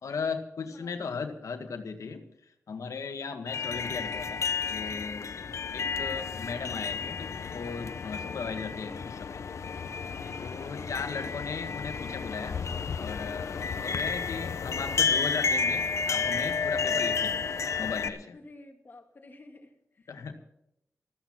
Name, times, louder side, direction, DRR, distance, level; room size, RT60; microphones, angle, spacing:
voice 1, 0.0-2.2 2.7-4.4 4.7-5.4 5.7-9.4 10.4-12.6 13.0-17.5 17.8-18.4 20.1-20.4, left 5 dB, 90° left, 7 dB, 1.7 m, -37 dB
voice 2, 0.6-1.3 5.8-6.3 8.8-9.1 18.3-20.2, left 2 dB, 40° left, 4 dB, 2.2 m, -53 dB
sound 1, 3.5-18.1, left 5 dB, 65° left, 0.9 m, -31 dB
14.5 x 14.0 x 5.9 m, 0.80 s
wide cardioid pair, 175°, 5 cm